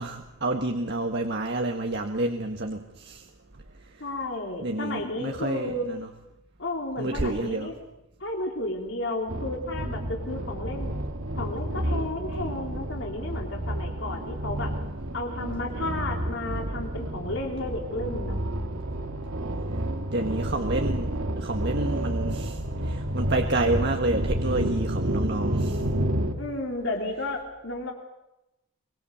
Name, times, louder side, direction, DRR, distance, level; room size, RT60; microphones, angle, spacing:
voice 1, 0.0-3.3 4.6-6.1 7.0-7.7 20.1-25.8, right 2 dB, 50° right, 4 dB, 1.5 m, -29 dB
voice 2, 4.0-5.9 6.6-7.7 8.2-10.9 11.4-14.7 15.1-18.4 26.4-27.9, left 2 dB, 60° left, 1 dB, 3.4 m, -32 dB
sound 1, 9.3-26.3, right 1 dB, 80° right, 2.3 m, -30 dB
24.5 x 22.5 x 7.1 m, 0.92 s
head